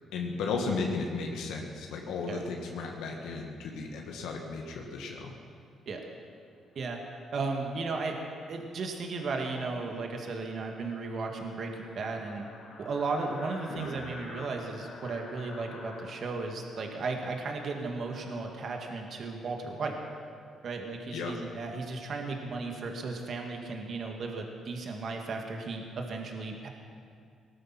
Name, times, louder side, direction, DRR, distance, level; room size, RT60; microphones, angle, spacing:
voice 1, 0.1-5.3 13.7-13.9 21.1-21.4, left 4 dB, 90° left, 1 dB, 1.6 m, -34 dB
voice 2, 7.3-8.2 8.5-12.5 12.8-20.0 20.6-26.7, right 3 dB, 55° right, 2 dB, 2.0 m, -35 dB
sound 1, 10.4-19.1, left 2 dB, 70° left, 3.2 m, -50 dB
18.5 x 12.5 x 5.9 m, 2.3 s
cardioid pair, 90°, 0 cm